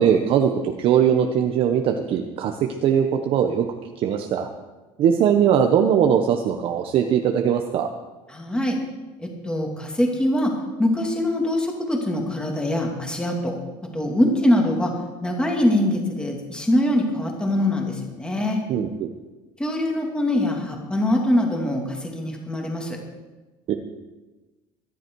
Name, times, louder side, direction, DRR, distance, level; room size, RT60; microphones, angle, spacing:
voice 1, 0.0-2.5 2.8-3.7 4.0-4.5 5.0-7.9 18.7-19.1 23.7-23.8, right 8 dB, 50° right, 4 dB, 1.0 m, -20 dB
voice 2, 8.3-8.8 9.4-10.5 10.8-13.5 13.9-14.9 15.2-18.6 19.6-23.0, left 1 dB, 5° left, 1 dB, 2.5 m, -23 dB
23.0 x 11.0 x 4.7 m, 1.2 s
cardioid pair, 150°, 12 cm